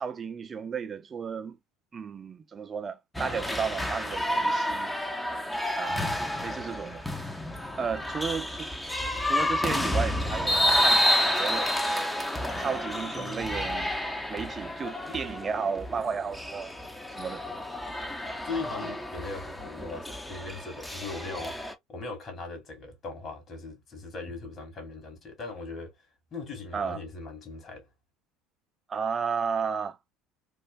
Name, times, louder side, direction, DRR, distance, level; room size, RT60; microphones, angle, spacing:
voice 1, 0.0-1.6 1.9-4.9 5.8-6.0 6.4-7.3 7.8-8.7 9.2-11.7 12.6-14.0 14.3-16.7 17.1-17.4 26.7-27.0 28.9-30.0, right 6 dB, 30° right, 0.6 m, -33 dB
sound 1, 3.1-21.7, left 1 dB, 5° left, 0.8 m, -30 dB
voice 2, 5.9-6.2 13.1-13.7 15.1-15.2 18.4-21.5 21.9-25.9 26.3-27.8, left 3 dB, 40° left, 1.9 m, -39 dB
3.2 x 2.4 x 2.4 m
figure-of-eight pair, 65°, 0 cm